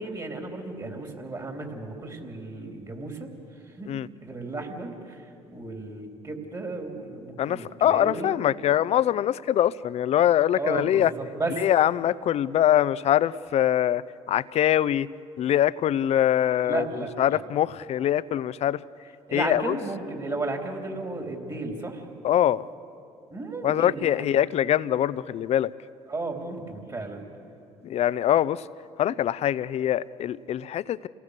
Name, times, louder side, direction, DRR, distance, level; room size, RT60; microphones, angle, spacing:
voice 1, 0.0-3.9 4.2-8.3 10.5-11.6 16.7-17.4 19.3-22.1 23.3-24.4 26.1-27.3, right 2 dB, 30° right, 2 dB, 3.6 m, -34 dB
voice 2, 7.4-11.1 11.6-15.1 15.4-16.9 17.2-18.8 19.3-19.8 22.2-22.7 23.6-25.7 27.8-28.7 29.0-31.1, left 11 dB, 55° left, 18 dB, 0.6 m, -23 dB
28.0 x 18.5 x 6.7 m, 2.6 s
hypercardioid pair, 65°, 13 cm